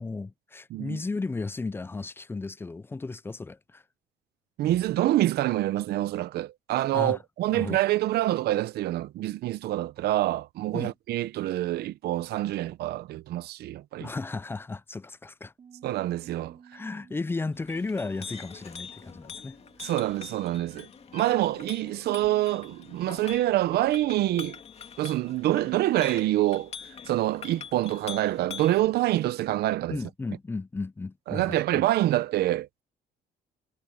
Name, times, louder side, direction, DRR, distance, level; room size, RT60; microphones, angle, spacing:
voice 1, 0.0-3.8 6.9-7.2 7.5-7.8 10.7-10.9 14.0-15.5 16.7-19.9 29.9-31.8, left 3 dB, 15° left, 0.4 m, -34 dB
voice 2, 4.6-14.1 15.8-16.6 19.8-20.9 21.1-24.6 25.0-30.0 31.3-32.8, right 15 dB, 70° right, 0.8 m, -26 dB
Bass guitar, 15.6-21.8, right 7 dB, 35° right, 2.8 m, -56 dB
Chink clink, 17.5-28.9, left 7 dB, 40° left, 2.3 m, -44 dB
cardioid pair, 110°, 17 cm